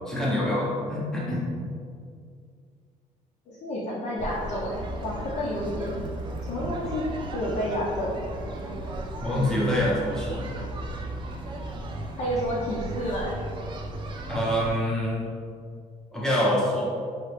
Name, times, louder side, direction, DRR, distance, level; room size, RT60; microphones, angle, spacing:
voice 1, 0.1-1.5 9.2-10.5 14.3-15.2 16.1-16.9, left 1 dB, 5° left, -6 dB, 0.8 m, -26 dB
voice 2, 3.5-6.0 6.5-7.0 7.3-8.1 9.3-10.0 12.2-13.4, equal, 50° left, -6 dB, 0.7 m, -30 dB
sound 1, 4.2-14.7, right 1 dB, 35° right, 0.4 m, -35 dB
4.3 x 2.9 x 3.3 m, 2.2 s
cardioid pair, 180°, 14 cm